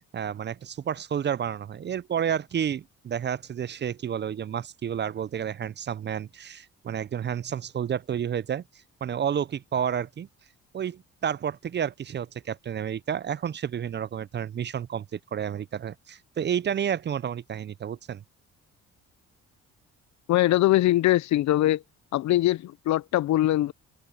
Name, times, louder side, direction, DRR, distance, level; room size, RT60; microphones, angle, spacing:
voice 1, 0.0-8.6 9.0-10.3 10.7-18.2, right 8 dB, 35° right, 0.5 m, -30 dB
voice 2, 20.3-21.8 22.1-23.7, left 15 dB, 65° left, 0.5 m, -22 dB
cardioid pair, 90°, 30 cm